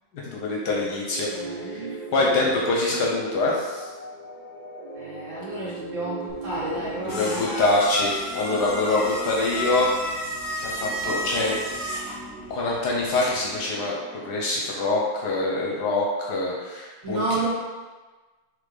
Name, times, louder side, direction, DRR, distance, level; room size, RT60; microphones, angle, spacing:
voice 1, 0.3-1.3 1.6-1.9 2.1-3.9 7.0-9.9 10.6-11.6 12.5-14.0 14.2-17.2, left 2 dB, 65° left, -3 dB, 1.1 m, -24 dB
sound 1, 1.1-14.8, right 2 dB, 55° right, 0.4 m, -40 dB
voice 2, 1.3-3.1 4.9-7.7 17.0-17.5, right 2 dB, 75° right, -8 dB, 2.3 m, -32 dB
sound 2, 6.3-13.6, left 1 dB, 45° left, 1.0 m, -33 dB
3.8 x 3.6 x 3.3 m, 1.3 s
omnidirectional pair, 2.1 m